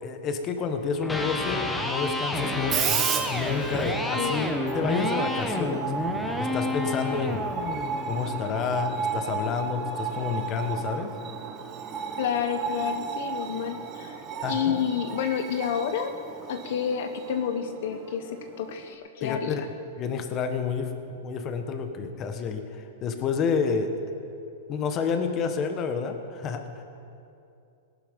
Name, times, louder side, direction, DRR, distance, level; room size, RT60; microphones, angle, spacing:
voice 1, 0.0-5.9 6.4-7.4 8.0-11.1 14.4-14.9 19.2-19.7 20.0-24.0 24.7-26.8, left 5 dB, 25° left, 7 dB, 1.2 m, -29 dB
Electric guitar, 1.0-9.0, left 1 dB, 5° left, 1.0 m, -30 dB
Screech, 2.4-19.0, right 6 dB, 25° right, 1.0 m, -34 dB
voice 2, 4.1-4.5 12.2-16.2 16.5-19.6, left 8 dB, 60° left, 8 dB, 0.9 m, -30 dB
18.5 x 11.5 x 5.2 m, 2.6 s
hypercardioid pair, 150°, 0 cm